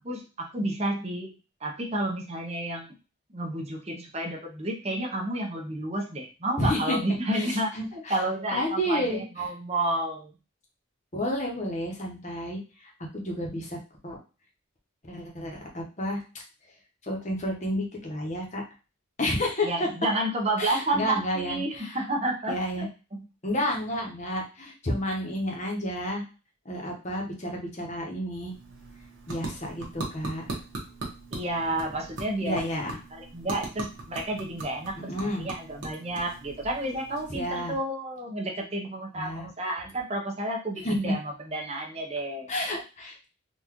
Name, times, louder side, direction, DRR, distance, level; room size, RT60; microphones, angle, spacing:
voice 1, 0.0-1.3 1.6-2.9 3.3-10.3 19.6-23.3 31.3-32.6 33.1-42.5, right 1 dB, 30° right, 1 dB, 0.8 m, -31 dB
voice 2, 6.6-7.0 7.3-8.2 8.5-9.2 11.1-13.8 14.0-14.2 15.1-16.2 17.0-18.6 19.2-19.7 20.6-22.0 22.5-22.9 23.4-26.2 26.6-28.5 29.3-30.6 32.4-33.0 35.1-35.5 37.3-37.7 39.1-39.5 40.8-41.1 42.5-43.3, left 1 dB, 35° left, 0 dB, 0.9 m, -31 dB
sound 1, 28.3-37.8, right 2 dB, 60° right, 1.1 m, -40 dB
3.9 x 2.5 x 3.0 m, 0.32 s
head